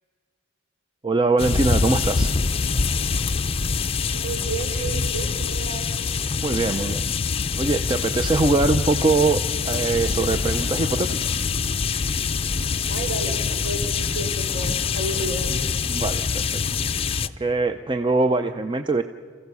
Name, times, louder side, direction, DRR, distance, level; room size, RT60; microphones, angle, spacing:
voice 1, 1.0-2.3 6.4-7.0 7.6-11.4 15.9-16.6 17.2-19.0, right 3 dB, 25° right, 8 dB, 0.5 m, -22 dB
sound 1, 1.4-17.3, left 5 dB, 30° left, 0.5 m, -25 dB
voice 2, 4.1-5.9 12.9-15.8, right 2 dB, 55° right, 4 dB, 3.3 m, -32 dB
28.5 x 15.5 x 6.9 m, 2.2 s
head